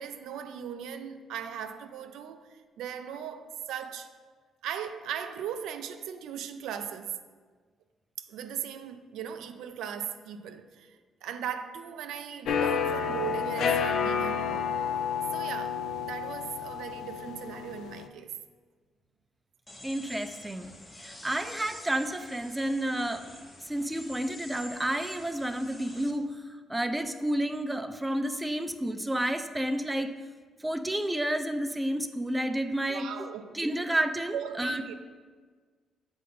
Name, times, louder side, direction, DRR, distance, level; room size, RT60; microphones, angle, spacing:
voice 1, 0.0-4.2 4.6-7.2 8.2-14.8 15.3-18.3 32.9-33.6 34.3-34.9, right 8 dB, 85° right, 0.3 m, -38 dB
sound 1, 12.5-18.1, left 7 dB, 75° left, 0.3 m, -30 dB
sound 2, 19.7-26.1, left 1 dB, 20° left, 0.7 m, -47 dB
voice 2, 19.8-20.7 21.0-23.3 23.7-30.1 30.6-33.3 33.5-34.9, right 1 dB, 10° right, 0.4 m, -30 dB
7.4 x 2.6 x 5.3 m
cardioid pair, 90°, 0 cm